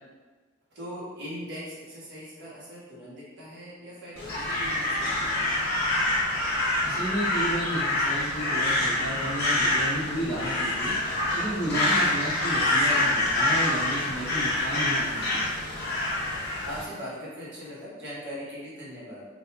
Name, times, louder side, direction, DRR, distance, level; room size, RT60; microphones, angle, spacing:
voice 1, 0.7-5.5 16.6-19.2, equal, 60° right, -8 dB, 1.2 m, -40 dB
Crow, 4.2-16.8, left 1 dB, 55° left, 0.8 m, -26 dB
voice 2, 6.8-11.0 11.3-15.5, right 1 dB, 15° right, -11 dB, 0.7 m, -32 dB
4.2 x 2.5 x 2.2 m, 1.4 s
head